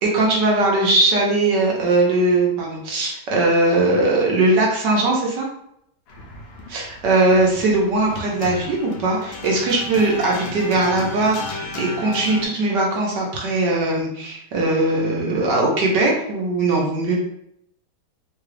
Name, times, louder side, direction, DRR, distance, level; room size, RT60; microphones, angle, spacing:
voice 1, 0.0-5.5 6.7-11.4 11.7-17.2, right 2 dB, 65° right, -2 dB, 1.4 m, -20 dB
sound 1, 6.1-12.5, left 3 dB, 75° left, 1.3 m, -34 dB
3.8 x 2.4 x 3.2 m, 0.74 s
omnidirectional pair, 2.1 m